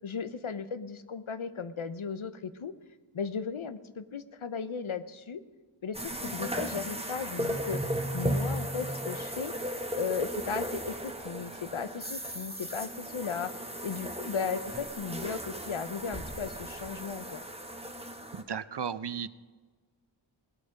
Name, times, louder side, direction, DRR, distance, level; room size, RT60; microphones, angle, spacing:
voice 1, 0.0-2.7 3.1-5.4 5.8-7.8 8.1-9.5 9.9-17.4, left 6 dB, 85° left, 12 dB, 0.8 m, -36 dB
sound 1, 5.9-18.4, right 1 dB, 15° right, 1.3 m, -36 dB
voice 2, 18.3-19.3, right 7 dB, 60° right, 15 dB, 0.6 m, -35 dB
19.0 x 8.6 x 5.2 m, 1.4 s
wide cardioid pair, 40°, 48 cm